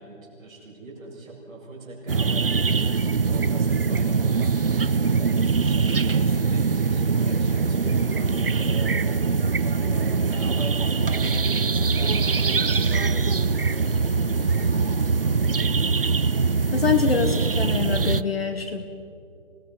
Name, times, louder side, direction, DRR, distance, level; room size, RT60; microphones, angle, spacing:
voice 1, 0.0-2.6 3.2-9.0 9.6-13.7 14.2-16.2, right 2 dB, 10° right, -11 dB, 5.5 m, -40 dB
sound 1, 2.1-18.2, right 4 dB, 45° right, 0.5 m, -22 dB
voice 2, 16.7-18.8, left 6 dB, 50° left, 7 dB, 1.2 m, -24 dB
27.0 x 19.5 x 5.6 m, 2.6 s
hypercardioid pair, 175°, 40 cm